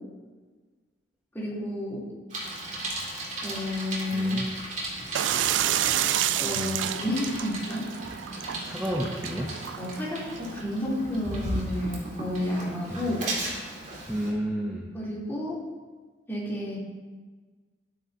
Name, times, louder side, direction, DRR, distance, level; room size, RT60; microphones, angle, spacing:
voice 1, 1.3-2.1 3.4-4.5 6.4-7.9 9.8-13.2 14.9-15.6 16.3-16.8, left 1 dB, 10° left, -7 dB, 3.1 m, -31 dB
Bicycle, 2.3-14.3, right 1 dB, 40° right, 2.4 m, -36 dB
voice 2, 4.1-4.5 6.6-6.7 8.6-9.5 12.9-13.1 14.1-14.8, equal, 5° right, -2 dB, 0.7 m, -31 dB
sound 1, 5.1-10.6, right 11 dB, 80° right, 0.3 m, -29 dB
12.5 x 9.2 x 2.8 m, 1.4 s
head